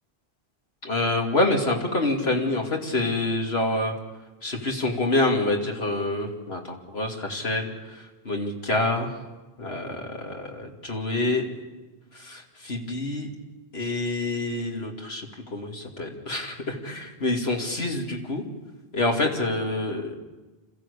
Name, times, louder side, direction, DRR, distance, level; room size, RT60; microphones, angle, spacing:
voice 1, 0.8-3.9 4.4-7.7 8.2-9.1 9.6-11.4 12.2-13.3 13.7-18.4 18.9-20.1, left 2 dB, 85° left, 1 dB, 3.0 m, -27 dB
28.0 x 14.5 x 8.5 m, 1.2 s
omnidirectional pair, 1.0 m